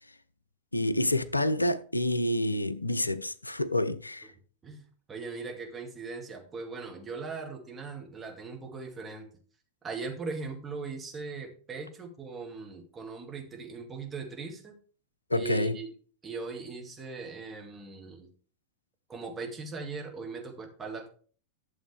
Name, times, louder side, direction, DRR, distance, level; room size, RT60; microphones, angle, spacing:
voice 1, 0.7-4.3 15.3-15.8, left 1 dB, 85° left, 0.5 m, -28 dB
voice 2, 5.1-9.3 9.8-14.8 15.3-15.9 16.2-18.3 19.1-21.1, right 4 dB, 15° right, 2.4 m, -39 dB
12.0 x 7.1 x 3.5 m
figure-of-eight pair, 90°, 0 cm